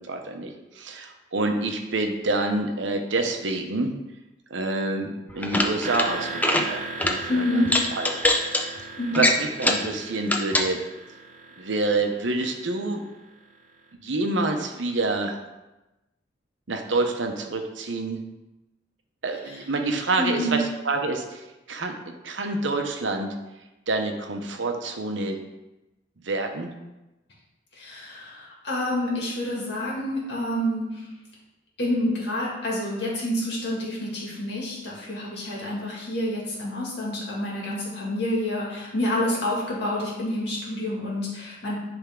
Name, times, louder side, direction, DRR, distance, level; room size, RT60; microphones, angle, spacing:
voice 1, 0.0-3.9 4.5-8.1 8.5-8.7 9.1-10.8 11.6-13.0 14.0-15.4 16.7-18.2 19.2-23.3 23.9-25.4 26.2-26.7, right 2 dB, 80° right, 4 dB, 0.9 m, -27 dB
sound 1, 5.3-6.1 6.3-6.7 7.0-7.2 7.7-8.6 9.1-9.9 10.3-10.7, left 1 dB, 10° left, 0.5 m, -23 dB
sound 2, 5.8-13.6, right 3 dB, 45° right, 0.7 m, -38 dB
voice 2, 7.3-7.7 8.9-9.2 20.2-20.6 27.7-31.0 31.8-41.7, left 1 dB, 65° left, -4 dB, 2.2 m, -28 dB
10.0 x 3.6 x 3.7 m, 1.0 s
head